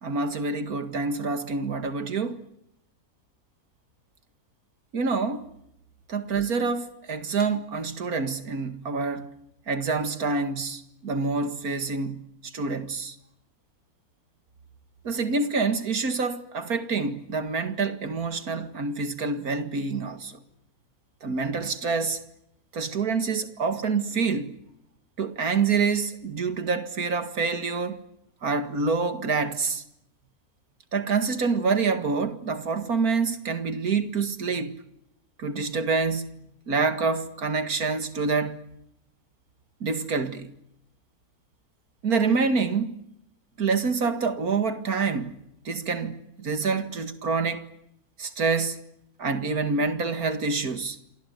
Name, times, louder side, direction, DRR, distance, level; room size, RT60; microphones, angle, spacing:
voice 1, 0.0-2.4 4.9-5.5 6.1-9.3 9.7-13.2 15.0-20.3 21.2-22.2 22.7-24.5 25.2-28.0 28.4-29.8 30.9-34.8 35.4-36.3 36.7-38.6 39.8-40.5 42.0-43.0 43.6-45.4 45.7-47.6 48.2-48.8 49.2-51.0, right 4 dB, 75° right, 2.4 m, -27 dB
27.5 x 21.0 x 9.3 m
omnidirectional pair, 1.6 m